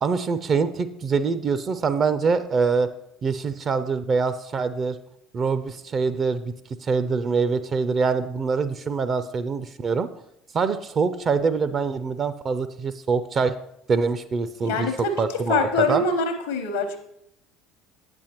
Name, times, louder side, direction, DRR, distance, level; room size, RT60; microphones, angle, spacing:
voice 1, 0.0-2.9 3.2-5.0 5.3-6.5 6.8-10.1 10.5-13.5 13.9-14.9 15.2-16.0, right 5 dB, 40° right, 13 dB, 0.4 m, -24 dB
voice 2, 14.6-17.0, left 3 dB, 70° left, 7 dB, 0.9 m, -24 dB
8.4 x 7.8 x 2.9 m, 0.78 s
figure-of-eight pair, 65°, 0 cm